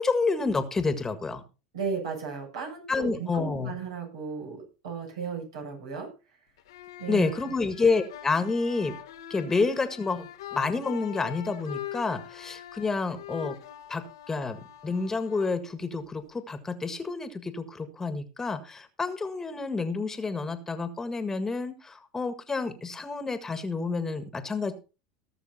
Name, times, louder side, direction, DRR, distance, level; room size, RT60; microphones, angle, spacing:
voice 1, 0.0-1.4 2.9-3.7 7.1-9.0 9.3-13.5 13.9-14.6 14.8-24.7, left 4 dB, 20° left, 10 dB, 1.7 m, -29 dB
voice 2, 1.7-6.1 7.0-7.3, right 5 dB, 75° right, -1 dB, 7.4 m, -35 dB
sound 1, 6.6-16.4, left 11 dB, 80° left, 1.2 m, -43 dB
18.5 x 6.7 x 4.3 m, 0.32 s
hypercardioid pair, 90°, 3 cm